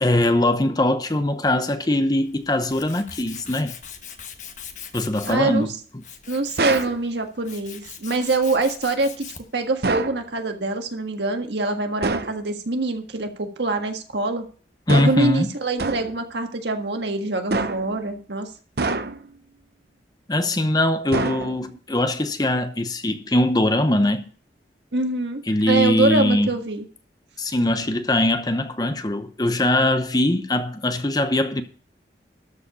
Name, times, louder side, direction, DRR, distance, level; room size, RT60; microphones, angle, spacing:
voice 1, 0.0-3.7 4.9-6.0 14.9-15.5 20.3-24.3 25.5-26.6 27.4-31.6, left 1 dB, 20° left, 0.8 m, -21 dB
Tools, 2.2-9.6, left 8 dB, 45° left, 1.2 m, -41 dB
voice 2, 5.3-5.7 6.3-9.3 9.5-14.5 14.9-18.5 24.9-25.4 25.7-26.8, right 2 dB, 80° right, 1.7 m, -24 dB
sound 1, 6.6-7.0 9.8-10.2 12.0-12.4 14.9-15.3 15.8-16.2 17.5-18.0 18.8-19.4 21.1-21.8, right 3 dB, 60° right, 0.7 m, -26 dB
13.0 x 4.9 x 6.8 m
head